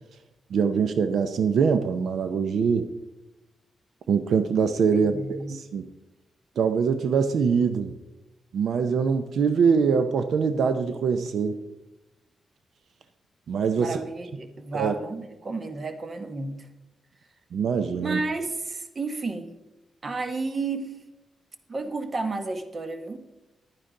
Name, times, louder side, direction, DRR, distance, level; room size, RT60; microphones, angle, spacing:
voice 1, 0.5-2.9 4.1-5.9 6.6-7.9 8.5-11.6 13.5-14.0 14.7-14.9 17.5-18.2, right 6 dB, 75° right, 9 dB, 0.6 m, -23 dB
voice 2, 4.9-5.6 13.8-16.7 18.0-19.5 20.0-21.0 21.7-23.2, right 3 dB, 35° right, 8 dB, 1.0 m, -32 dB
10.5 x 9.7 x 3.8 m, 0.99 s
wide cardioid pair, 120°, 0 cm